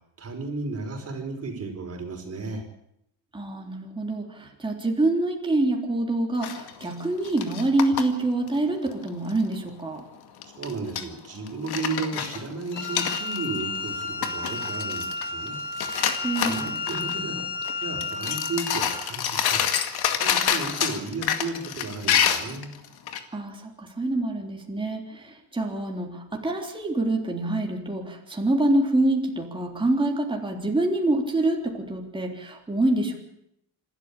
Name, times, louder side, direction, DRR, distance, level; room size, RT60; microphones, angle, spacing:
voice 1, 0.2-2.6 10.5-15.5 16.4-17.4 17.8-22.7, right 3 dB, 35° right, 4 dB, 5.1 m, -34 dB
voice 2, 3.3-10.0 16.2-16.7 23.3-33.2, right 2 dB, 10° right, 1 dB, 3.6 m, -26 dB
sound 1, 6.4-8.0 8.5-8.6 8.9-9.4 10.4-11.1 11.5-13.6 13.9-14.0 14.2-15.5 15.7-17.1 17.6-17.7 18.0-23.2, left 9 dB, 60° left, 2.2 m, -27 dB
Wind instrument woodwind instrument, 12.7-19.1, left 3 dB, 25° left, 5.1 m, -32 dB
26.0 x 13.0 x 8.6 m, 0.77 s
cardioid pair, 140°, 43 cm